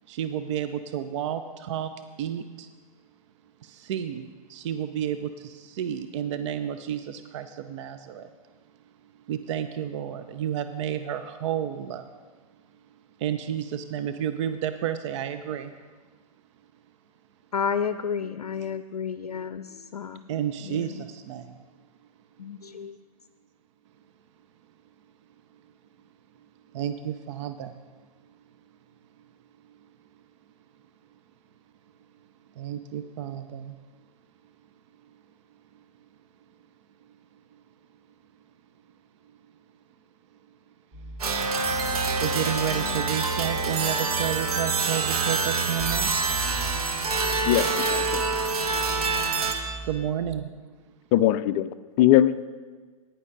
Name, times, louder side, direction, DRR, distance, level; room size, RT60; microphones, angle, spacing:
voice 1, 0.1-1.9 2.2-2.7 3.6-8.3 9.3-12.1 13.2-15.7 20.3-21.6 26.7-27.8 32.6-33.8 41.7-46.4 49.8-50.5, right 10 dB, 50° right, 10 dB, 0.6 m, -31 dB
voice 2, 17.5-20.2 20.6-21.1 22.4-23.0, left 6 dB, 85° left, 12 dB, 0.5 m, -31 dB
sound 1, 40.9-50.4, right 2 dB, 20° right, 2.1 m, -41 dB
sound 2, 41.2-49.5, right 4 dB, 75° right, 1.5 m, -26 dB
sound 3, 41.6-46.7, right 6 dB, ahead, 4.5 m, -36 dB
voice 3, 47.4-48.0 51.1-51.7 52.0-52.4, left 13 dB, 35° left, 14 dB, 0.4 m, -20 dB
15.0 x 10.0 x 3.9 m, 1.4 s
hypercardioid pair, 115°, 19 cm